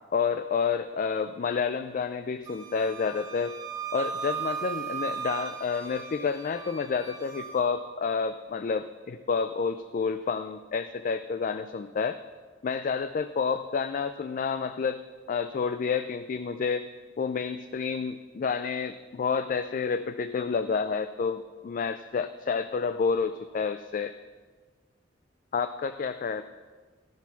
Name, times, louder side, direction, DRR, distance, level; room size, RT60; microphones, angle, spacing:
voice 1, 0.1-3.6 3.9-12.2 12.6-15.0 15.3-16.9 17.2-24.1 25.5-26.4, left 5 dB, 45° left, 11 dB, 0.3 m, -29 dB
Wind instrument woodwind instrument, 2.5-7.7, right 6 dB, 20° right, 1.0 m, -37 dB
14.5 x 5.7 x 6.0 m, 1.5 s
head